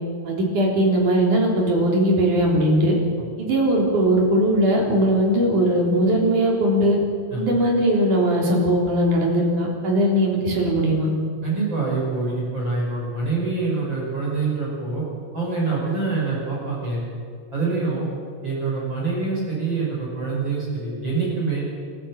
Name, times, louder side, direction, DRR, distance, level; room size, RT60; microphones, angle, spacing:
voice 1, 0.2-2.9 3.4-7.0 7.4-11.1, right 1 dB, 45° right, -1 dB, 4.8 m, -19 dB
voice 2, 11.4-15.0 15.3-17.0 17.5-18.1 18.4-21.6, right 4 dB, 25° right, -5 dB, 5.9 m, -25 dB
29.0 x 13.5 x 7.5 m, 2.2 s
omnidirectional pair, 5.2 m